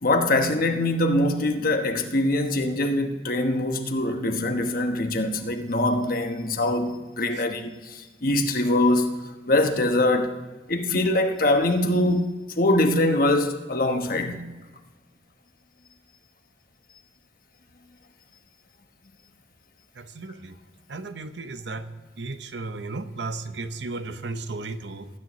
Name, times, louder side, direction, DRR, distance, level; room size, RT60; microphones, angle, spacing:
voice 1, 0.0-9.1 9.5-10.4 10.7-14.4, left 1 dB, 50° left, 1.1 m, -23 dB
voice 2, 20.0-20.5 20.9-21.9 22.2-25.1, right 3 dB, 75° right, 0.8 m, -34 dB
19.5 x 9.7 x 3.1 m
head